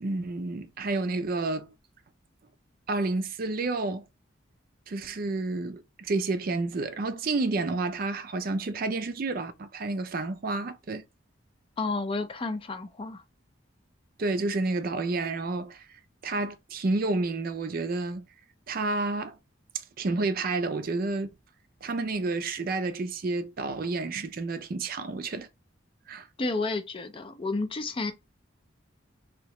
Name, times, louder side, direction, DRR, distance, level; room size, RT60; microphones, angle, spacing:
voice 1, 0.0-1.7 2.9-4.1 4.9-11.1 14.2-15.9 16.2-18.2 18.7-19.4 20.0-21.3 21.8-25.5 26.1-26.3, right 3 dB, 45° right, 0.4 m, -30 dB
voice 2, 11.8-13.2 26.4-28.1, left 3 dB, 25° left, 0.4 m, -31 dB
3.0 x 2.8 x 3.0 m
head